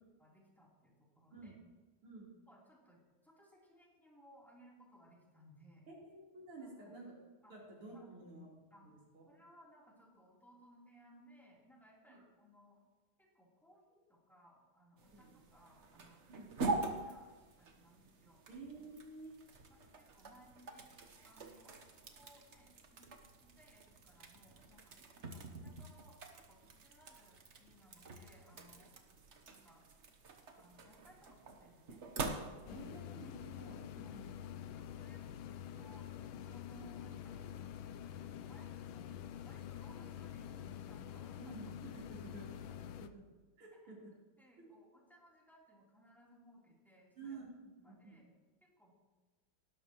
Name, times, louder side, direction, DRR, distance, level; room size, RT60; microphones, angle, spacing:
voice 1, 0.2-1.5 2.5-5.9 6.6-7.0 7.4-7.5 7.9-8.2 8.7-8.9 9.3-12.8 13.2-16.3 16.9-18.4 19.7-23.1 23.4-29.0 29.4-29.9 30.6-32.0 34.0-34.2 34.8-35.3 35.7-37.6 38.1-41.6 43.8-43.9 44.4-47.4 47.8-48.3 48.6-48.9, equal, ahead, -5 dB, 3.5 m, -63 dB
voice 2, 5.9-7.1 7.5-8.5 8.8-9.2 12.1-12.2 15.1-15.3 16.3-16.5 18.5-19.3 32.3-34.3 41.4-43.2 43.6-44.1 44.6-44.7 47.2-47.5 47.8-48.2, right 3 dB, 85° right, -5 dB, 4.7 m, -52 dB
sound 1, 15.0-33.0, right 3 dB, 45° right, 1.1 m, -45 dB
sound 2, 32.7-43.1, left 9 dB, 75° left, 1.3 m, -47 dB
18.5 x 11.5 x 3.1 m, 1.2 s
omnidirectional pair, 2.4 m